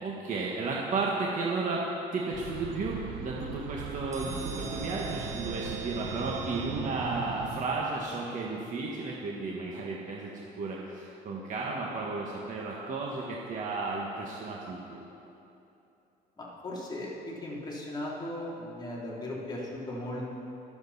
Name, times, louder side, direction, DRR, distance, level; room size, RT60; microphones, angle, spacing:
voice 1, 0.0-1.9 2.1-15.0, right 3 dB, 50° right, -3 dB, 1.5 m, -33 dB
Warwick Avenue - By Canal, 2.3-7.7, right 6 dB, 80° right, 1.2 m, -40 dB
sound 1, 4.1-7.7, right 4 dB, 20° right, 1.3 m, -41 dB
voice 2, 16.4-20.3, left 1 dB, 25° left, -5 dB, 3.0 m, -37 dB
23.5 x 7.9 x 4.1 m, 2.9 s
cardioid pair, 110°, 17 cm